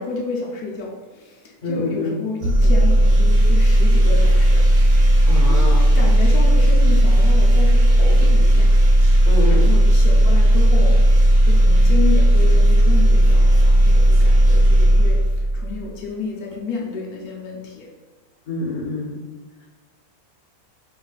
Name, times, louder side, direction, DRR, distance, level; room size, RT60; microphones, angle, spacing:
voice 1, 0.0-4.6 4.9-5.6 5.9-8.8 9.5-17.9, left 4 dB, 85° left, -1 dB, 1.1 m, -31 dB
voice 2, 1.6-2.1 5.2-5.9 9.3-9.6 18.5-19.2, left 2 dB, 55° left, -4 dB, 1.3 m, -26 dB
sound 1, 2.4-15.8, right 1 dB, 90° right, 1.3 m, -14 dB
4.6 x 3.2 x 2.4 m, 1.3 s
omnidirectional pair, 1.5 m